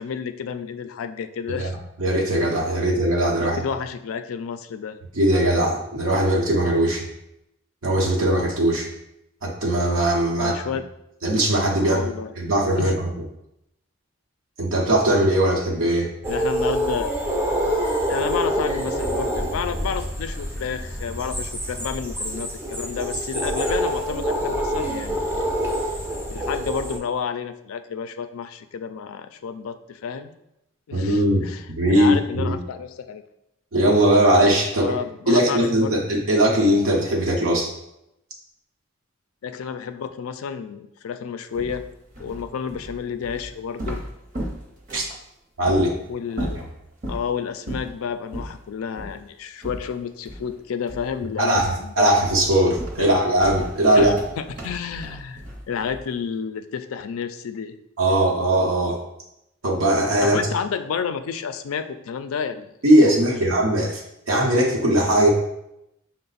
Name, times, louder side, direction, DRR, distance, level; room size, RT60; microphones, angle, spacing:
voice 1, 0.0-1.7 3.4-5.0 10.4-10.8 11.9-12.3 12.8-12.9 16.3-17.1 18.1-25.3 26.3-30.4 30.9-33.2 34.8-36.0 39.4-41.8 42.2-44.0 46.1-46.6 47.1-52.2 53.0-53.1 53.9-57.7 60.2-62.7 63.1-63.5, left 6 dB, 85° left, 10 dB, 0.4 m, -30 dB
voice 2, 1.6-3.6 5.1-7.0 7.8-8.9 9.4-10.5 11.2-12.0 12.4-13.1 14.6-16.1 30.9-31.4 31.7-32.6 33.7-34.9 35.3-37.7 44.9-45.0 45.6-46.0 46.4-46.5 51.4-54.1 58.0-59.0 59.6-60.4 62.8-64.0 64.3-65.3, right 1 dB, 80° right, -2 dB, 0.8 m, -20 dB
sound 1, 16.2-27.0, equal, 10° right, 0.4 m, -26 dB
sound 2, 41.5-45.2 45.7-45.8 46.3-47.3 47.7-48.0 48.3-48.6 49.0-49.2 49.6-50.6 50.9-51.2 51.6-51.9 52.2-56.2, equal, 40° right, 0.8 m, -35 dB
5.7 x 2.1 x 4.0 m, 0.83 s
head